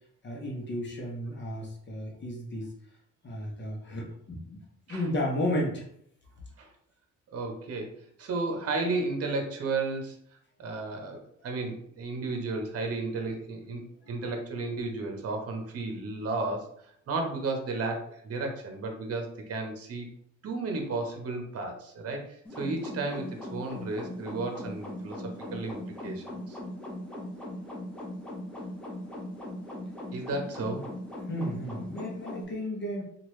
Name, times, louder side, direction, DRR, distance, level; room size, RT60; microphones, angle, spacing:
voice 1, 0.2-2.7 3.2-4.6 4.9-5.9 14.0-14.2 31.3-33.0, left 1 dB, 40° left, -1 dB, 0.9 m, -33 dB
voice 2, 7.3-7.9 8.2-10.2 10.6-20.1 20.4-25.2 25.5-26.6 30.1-30.9, right 3 dB, 50° right, 3 dB, 0.9 m, -33 dB
sound 1, 22.5-32.5, left 1 dB, 5° left, 0.8 m, -39 dB
2.9 x 2.4 x 3.1 m, 0.66 s
cardioid pair, 90°, 30 cm